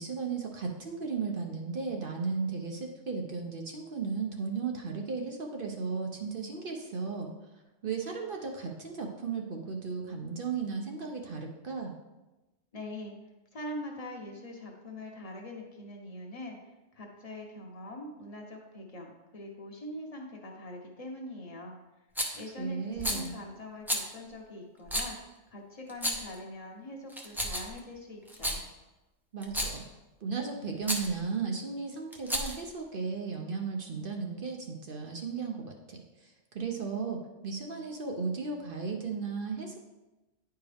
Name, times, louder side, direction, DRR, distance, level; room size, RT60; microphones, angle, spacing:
voice 1, 0.0-7.3 7.8-11.9 22.6-23.3 29.3-29.8 30.2-39.8, right 5 dB, 50° right, 2 dB, 0.8 m, -35 dB
voice 2, 12.7-13.1 13.5-16.6 16.9-21.7 22.3-25.2 25.5-28.6, left 1 dB, 30° left, 0 dB, 1.1 m, -43 dB
Rattle, 22.2-22.4 23.0-23.3 23.9-24.1 24.9-25.1 25.9-26.4 27.1-27.8 28.3-28.6 29.4-29.8 30.8-31.1 32.1-32.7, equal, ahead, 0.6 m, -32 dB
10.0 x 4.6 x 3.4 m, 1.1 s
omnidirectional pair, 1.3 m